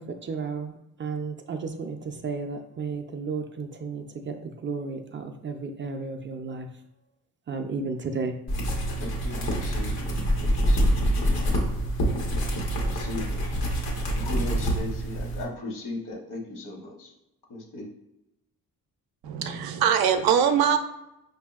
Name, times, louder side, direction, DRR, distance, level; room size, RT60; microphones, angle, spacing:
voice 1, 0.0-6.7 7.5-8.4, right 4 dB, 35° right, 6 dB, 0.4 m, -33 dB
sound 1, 8.5-15.4, equal, 85° left, 1.0 m, -26 dB
voice 2, 9.0-10.1 10.4-11.6 12.7-13.4 14.2-17.1 17.5-17.9, left 2 dB, 60° left, 1 dB, 1.0 m, -38 dB
voice 3, 19.2-20.8, right 8 dB, 85° right, 7 dB, 0.5 m, -22 dB
4.9 x 2.6 x 2.3 m, 0.89 s
cardioid pair, 85°, 35 cm